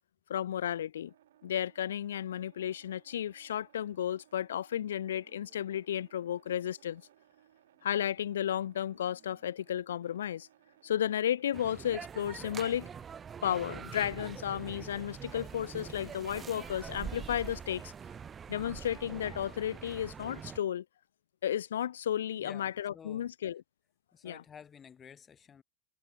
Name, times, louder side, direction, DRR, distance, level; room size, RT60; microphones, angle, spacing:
voice 1, 0.3-1.1 1.4-7.0 7.8-10.5 10.8-12.9 13.4-17.9 18.5-20.8 21.4-23.6 24.2-24.4, left 10 dB, 75° left, 0.4 m, -33 dB
sound 1, 1.1-16.0, right 12 dB, 70° right, 3.5 m, -65 dB
sound 2, 4.9-18.6, right 14 dB, 40° right, 6.5 m, -74 dB
sound 3, 11.5-20.6, right 7 dB, 25° right, 0.5 m, -44 dB
voice 2, 22.3-23.3 24.1-25.6, left 7 dB, 25° left, 1.2 m, -52 dB
hypercardioid pair, 90°, 0 cm